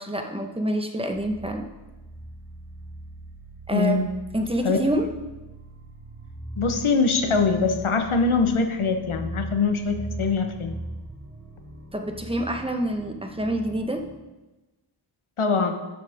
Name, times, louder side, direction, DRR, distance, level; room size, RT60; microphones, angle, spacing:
voice 1, 0.0-1.7 3.7-4.0 4.3-5.1 11.9-14.0, right 1 dB, 10° right, 4 dB, 1.2 m, -27 dB
sound 1, 1.1-14.2, right 1 dB, 30° right, 3.1 m, -40 dB
voice 2, 3.7-4.1 4.6-4.8 6.6-10.8 15.4-15.7, left 4 dB, 80° left, 5 dB, 1.2 m, -23 dB
14.0 x 6.6 x 3.6 m, 1.1 s
wide cardioid pair, 50°, 49 cm